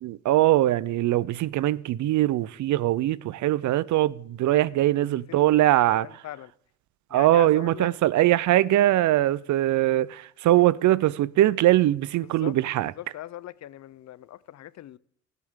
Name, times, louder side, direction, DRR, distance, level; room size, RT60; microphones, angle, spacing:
voice 1, 0.0-6.1 7.1-12.9, right 14 dB, 70° right, 0.6 m, -22 dB
voice 2, 5.3-6.5 7.1-7.9 12.2-12.5 13.0-15.0, left 13 dB, 65° left, 0.6 m, -41 dB
23.0 x 8.2 x 3.7 m
cardioid pair, 90°, 30 cm